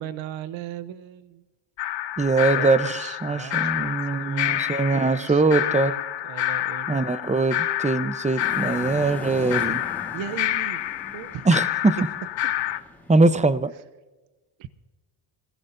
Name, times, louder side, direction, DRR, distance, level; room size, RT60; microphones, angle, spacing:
voice 1, 0.0-1.4 2.5-6.0 6.3-7.0 7.3-7.4 10.1-10.8 11.1-11.5 14.6-14.7, right 10 dB, 70° right, 13 dB, 1.0 m, -37 dB
sound 1, 1.8-12.8, left 13 dB, 65° left, 1.0 m, -28 dB
voice 2, 2.2-5.9 6.9-9.8 11.4-12.0 13.1-13.7, right 3 dB, 15° right, 13 dB, 0.9 m, -22 dB
sound 2, 8.4-13.5, left 1 dB, 5° left, 4.4 m, -41 dB
27.5 x 16.0 x 2.7 m, 1.2 s
cardioid pair, 95°, 47 cm